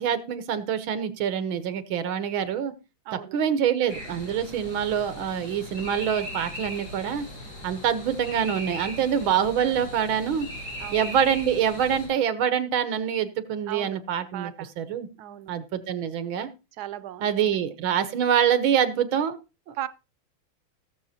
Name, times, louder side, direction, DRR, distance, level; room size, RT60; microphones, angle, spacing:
voice 1, 0.0-2.7 3.3-7.3 7.6-10.5 10.9-14.5 14.8-15.1 15.5-16.5 17.2-19.4 19.7-19.8, right 8 dB, 90° right, 1.9 m, -25 dB
voice 2, 3.0-3.4 10.8-11.1 13.7-14.0 14.3-14.7 15.2-15.6 16.7-17.7 19.7-19.9, right 13 dB, 65° right, 1.1 m, -37 dB
sound 1, 3.9-12.1, equal, 75° left, 5.7 m, -39 dB
19.5 x 7.2 x 2.8 m
omnidirectional pair, 2.1 m